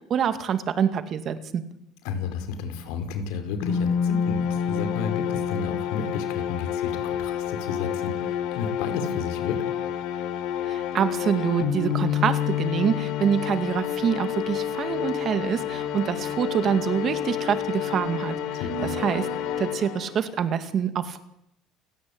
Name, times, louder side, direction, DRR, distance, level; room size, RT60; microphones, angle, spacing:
voice 1, 0.1-1.6 10.7-18.4 19.0-19.3 19.6-21.2, right 8 dB, 40° right, 10 dB, 2.3 m, -26 dB
voice 2, 2.0-9.6 18.6-19.0, left 5 dB, 85° left, 8 dB, 5.2 m, -32 dB
sound 1, 3.6-20.4, left 9 dB, 70° left, 3.9 m, -28 dB
29.5 x 17.0 x 8.8 m, 0.80 s
cardioid pair, 150°, 0 cm